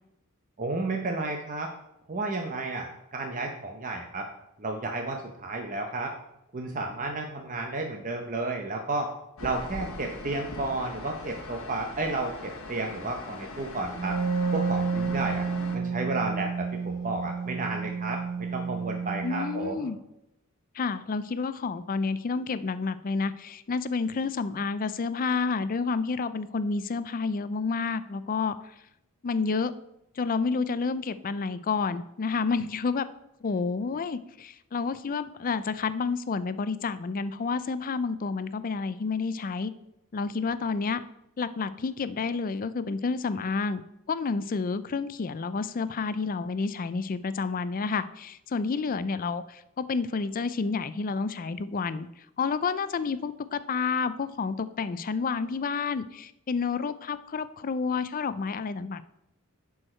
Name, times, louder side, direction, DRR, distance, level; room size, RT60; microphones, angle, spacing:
voice 1, 0.6-1.7 2.1-4.3 4.6-6.1 6.5-9.1 9.4-14.2 14.5-15.5 15.7-19.9, right 2 dB, 40° right, 2 dB, 0.8 m, -32 dB
sound 1, 9.4-15.8, left 2 dB, 65° left, 1.2 m, -41 dB
Wind instrument woodwind instrument, 13.9-19.6, right 5 dB, 65° right, 2.8 m, -30 dB
voice 2, 19.2-20.0 20.7-28.5 29.2-29.7 30.2-33.0 33.4-39.7 40.1-41.0 41.4-52.1 52.4-59.0, left 4 dB, 40° left, 14 dB, 0.4 m, -29 dB
11.0 x 4.7 x 4.4 m, 0.84 s
head